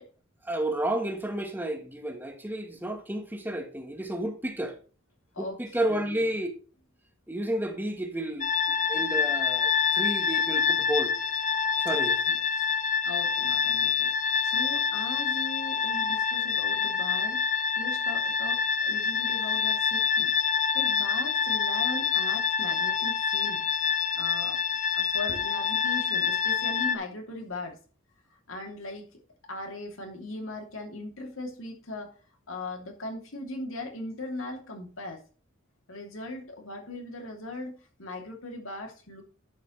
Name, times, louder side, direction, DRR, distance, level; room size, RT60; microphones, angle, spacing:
voice 1, 0.4-4.8 5.4-6.5 7.3-11.1 11.8-12.2, right 1 dB, 10° right, 1.3 m, -31 dB
voice 2, 5.9-6.3 12.3-12.4 13.0-20.3 20.7-23.6 24.2-24.6 24.9-27.8 28.5-29.2 29.5-32.1 32.5-35.2 35.9-39.2, left 2 dB, 75° left, 2.9 m, -39 dB
sound 1, 8.4-27.0, left 6 dB, 40° left, 0.7 m, -27 dB
11.0 x 8.1 x 3.2 m
head